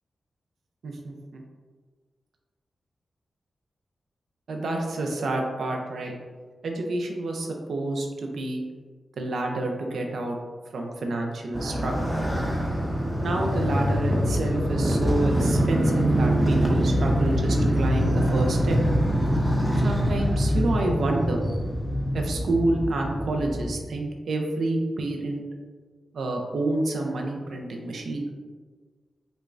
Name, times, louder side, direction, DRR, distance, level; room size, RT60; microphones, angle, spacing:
voice 1, 0.8-1.4 4.5-6.1 6.6-8.6 9.2-10.4 10.7-12.1 13.2-18.8 19.8-21.5 22.1-25.4 26.1-28.2, right 2 dB, 75° right, 2 dB, 0.5 m, -28 dB
Motorcycle, 11.5-23.7, equal, 5° right, 0.7 m, -24 dB
5.1 x 2.3 x 2.5 m, 1.5 s
cardioid pair, 80°, 0 cm